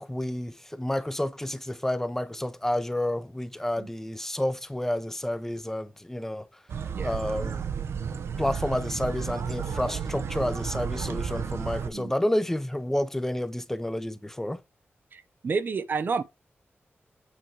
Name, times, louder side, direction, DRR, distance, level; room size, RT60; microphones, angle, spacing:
voice 1, 0.0-6.5 7.0-7.6 8.4-14.6, left 1 dB, 10° left, 0.7 m, -30 dB
sound 1, 6.7-11.9, right 7 dB, 80° right, 0.8 m, -32 dB
voice 2, 15.1-16.2, right 5 dB, 50° right, 0.6 m, -30 dB
8.6 x 4.5 x 4.6 m
wide cardioid pair, 155°, 4 cm